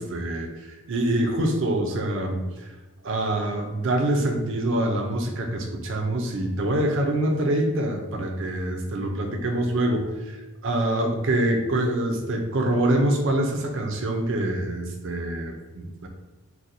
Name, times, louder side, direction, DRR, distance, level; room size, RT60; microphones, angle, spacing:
voice 1, 0.0-2.7 3.0-10.4 10.6-16.1, right 1 dB, 60° right, 2 dB, 0.5 m, -25 dB
4.1 x 2.2 x 2.6 m, 1.2 s
head